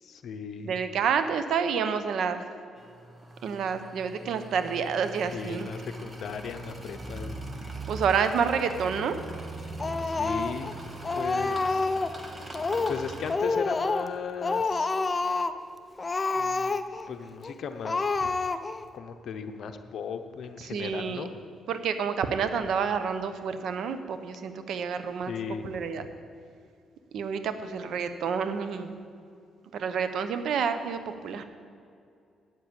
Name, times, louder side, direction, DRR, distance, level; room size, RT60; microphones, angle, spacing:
voice 1, 0.0-0.8 5.3-7.4 10.0-10.8 11.1-12.0 12.9-14.9 16.3-16.8 17.1-18.4 18.9-21.3 24.8-24.9 25.3-25.7, left 6 dB, 65° left, 8 dB, 0.8 m, -37 dB
voice 2, 0.6-2.4 3.4-5.7 7.9-9.1 20.6-21.3 21.7-25.3 25.6-26.0 27.1-28.9 29.7-31.4, right 6 dB, 70° right, 9 dB, 0.8 m, -29 dB
sound 1, 2.8-13.3, right 2 dB, 25° right, 1.5 m, -41 dB
Speech, 9.8-10.7 11.0-12.2 12.5-13.0 13.3-14.1 14.4-15.6 16.0-17.1 17.4-17.5 17.8-18.9, left 3 dB, 25° left, 0.5 m, -28 dB
8.4 x 7.6 x 8.8 m, 2.4 s
cardioid pair, 90°, 0 cm